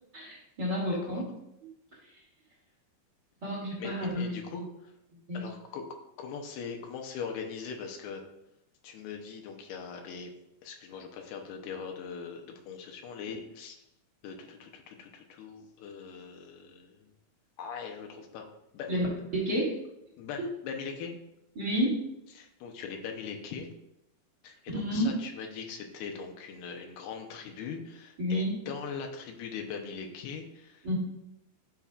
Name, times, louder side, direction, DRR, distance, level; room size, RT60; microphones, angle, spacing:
voice 1, 0.1-1.3 1.6-1.7 3.4-4.3 5.3-5.4 18.9-19.1 19.3-19.8 21.6-22.0 24.7-25.2 28.2-28.6 30.8-31.0, equal, 30° right, -5 dB, 2.4 m, -30 dB
voice 2, 0.9-1.2 3.8-4.9 5.3-5.9 6.2-8.2 8.8-10.3 10.6-13.8 14.2-17.1 17.6-18.5 18.7-18.9 20.2-21.1 22.3-23.7 24.4-30.9, left 6 dB, 80° left, 2 dB, 2.9 m, -41 dB
12.5 x 5.8 x 2.4 m, 0.83 s
omnidirectional pair, 4.6 m